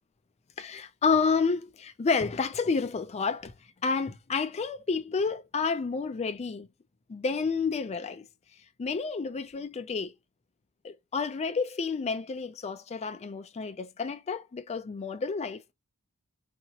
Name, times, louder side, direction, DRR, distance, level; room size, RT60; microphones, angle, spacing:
voice 1, 0.6-3.5 3.8-6.7 7.1-8.2 8.8-10.1 10.8-15.7, left 5 dB, 30° left, 0.4 m, -30 dB
2.8 x 2.7 x 2.8 m
head